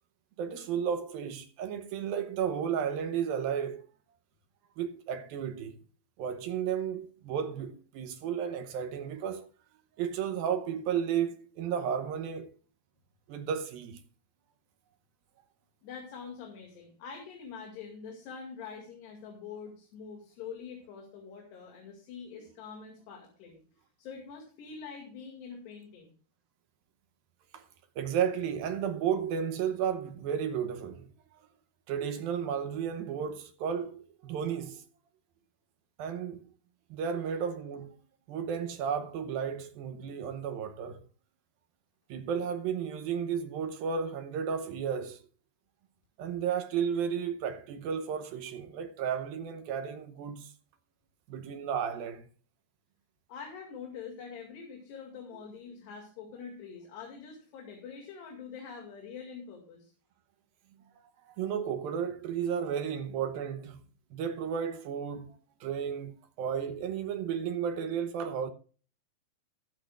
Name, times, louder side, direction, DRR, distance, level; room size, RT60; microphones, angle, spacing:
voice 1, 0.4-3.9 4.8-5.8 6.2-9.5 10.0-12.5 13.3-14.0 27.5-27.7 28.0-31.1 31.9-34.8 36.0-36.4 36.9-37.9 38.3-41.0 42.1-45.2 46.2-50.5 51.3-52.3 61.3-63.8 64.1-68.5, right 8 dB, 70° right, 2.4 m, -33 dB
voice 2, 15.8-23.6 24.0-26.1 53.3-59.9, left 6 dB, 80° left, 4.3 m, -45 dB
21.5 x 8.5 x 2.4 m
omnidirectional pair, 4.8 m